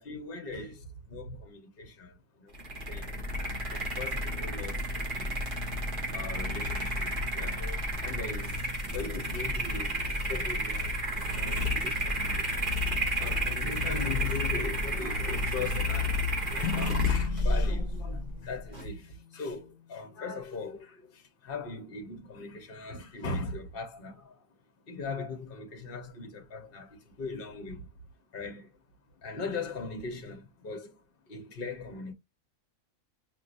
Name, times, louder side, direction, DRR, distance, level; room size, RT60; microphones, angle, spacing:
voice 1, 0.0-3.2 3.7-5.4 6.0-12.8 13.1-24.4 24.9-27.9 28.3-28.7 29.2-31.0 31.3-32.1, left 3 dB, 45° left, 1.2 m, -40 dB
sound 1, 2.5-18.9, left 1 dB, 40° right, 1.7 m, -31 dB
sound 2, 16.6-20.2, left 9 dB, 85° left, 1.0 m, -39 dB
5.4 x 2.9 x 2.5 m
omnidirectional pair, 1.3 m